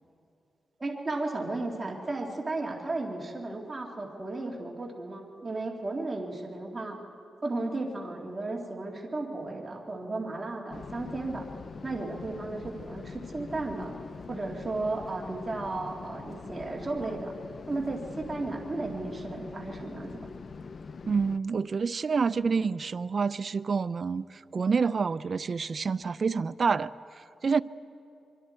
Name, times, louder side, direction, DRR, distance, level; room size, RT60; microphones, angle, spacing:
voice 1, 0.8-7.0 7.4-11.5 11.8-13.9 14.3-17.3 17.7-20.2, right 2 dB, 25° right, -1 dB, 2.2 m, -34 dB
sound 1, 10.7-21.4, left 5 dB, 50° left, 0.5 m, -43 dB
voice 2, 21.0-26.9 27.4-27.6, right 5 dB, 45° right, 15 dB, 0.4 m, -28 dB
25.0 x 23.5 x 4.5 m, 2.8 s
wide cardioid pair, 115°, 0 cm